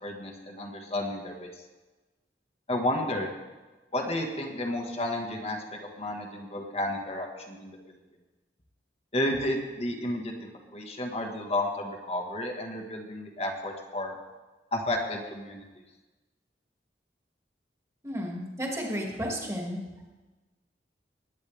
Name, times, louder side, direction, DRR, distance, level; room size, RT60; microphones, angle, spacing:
voice 1, 0.0-1.5 2.7-3.3 3.9-7.8 9.1-14.2 14.7-15.6, left 1 dB, 35° left, 2 dB, 1.6 m, -32 dB
voice 2, 18.0-19.8, equal, 15° right, -1 dB, 2.4 m, -33 dB
20.0 x 9.4 x 3.5 m, 1.2 s
head